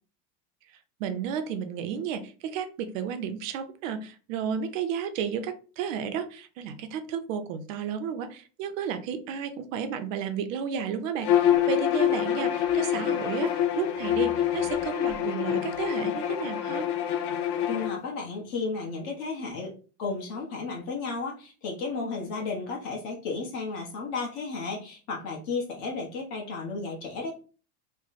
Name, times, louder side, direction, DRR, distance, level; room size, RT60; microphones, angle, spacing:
voice 1, 1.0-16.9, right 7 dB, 60° right, 9 dB, 0.6 m, -32 dB
Bowed string instrument, 11.2-18.0, left 10 dB, 90° left, 0.7 m, -26 dB
voice 2, 17.7-19.7 20.0-27.3, left 4 dB, 45° left, -1 dB, 1.1 m, -33 dB
3.1 x 2.1 x 4.0 m, 0.37 s
supercardioid pair, 170°, 45 cm